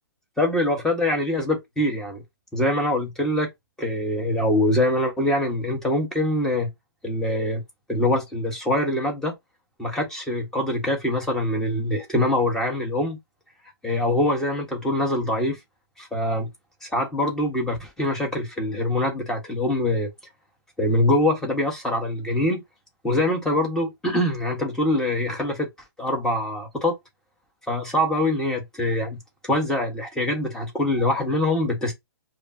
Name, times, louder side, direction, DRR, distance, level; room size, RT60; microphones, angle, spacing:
voice 1, 0.4-2.2 2.5-3.5 3.8-6.7 7.0-7.6 7.9-9.4 9.8-13.2 13.8-15.6 16.0-16.5 16.8-20.1 20.8-22.6 23.0-25.7 26.0-27.0 27.7-31.9, left 1 dB, 5° left, 1.4 m, -24 dB
5.0 x 2.2 x 2.7 m
hypercardioid pair, 135°, 13 cm